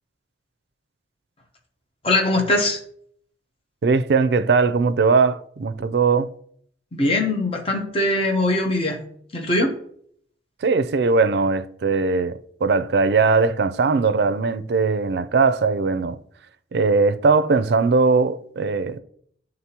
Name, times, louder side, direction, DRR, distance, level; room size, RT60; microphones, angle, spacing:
voice 1, 2.0-2.8 6.9-9.0 9.3-9.8, left 2 dB, 30° left, 0.8 m, -21 dB
voice 2, 3.8-6.3 10.6-16.2 16.7-19.0, right 4 dB, 65° right, 0.4 m, -20 dB
10.5 x 3.8 x 2.9 m
head